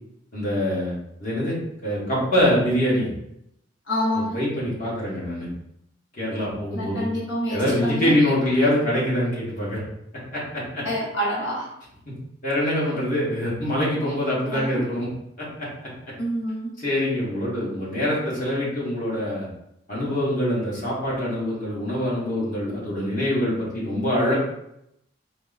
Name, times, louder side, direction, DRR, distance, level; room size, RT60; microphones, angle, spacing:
voice 1, 0.3-0.9 1.2-1.6 1.8-3.1 4.1-5.5 6.1-7.1 7.5-9.8 10.3-10.8 12.4-15.1 16.8-19.5 19.9-24.4, left 1 dB, 45° left, -7 dB, 1.5 m, -24 dB
voice 2, 3.9-4.4 6.7-8.2 10.8-11.7 14.5-14.8 16.2-16.7, equal, 80° left, -6 dB, 1.1 m, -27 dB
4.3 x 2.2 x 4.0 m, 0.80 s
head